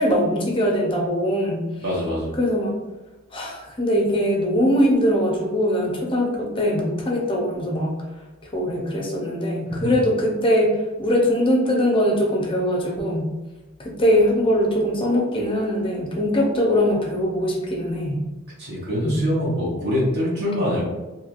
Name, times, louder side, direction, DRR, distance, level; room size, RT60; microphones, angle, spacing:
voice 1, 0.0-1.6 2.4-2.8 3.3-8.0 8.4-13.3 13.8-18.2 19.0-19.3, equal, 25° left, -1 dB, 0.6 m, -21 dB
voice 2, 1.8-2.3 9.7-9.9 18.6-20.8, left 1 dB, 50° right, -6 dB, 1.1 m, -24 dB
3.1 x 2.7 x 2.5 m, 1.1 s
head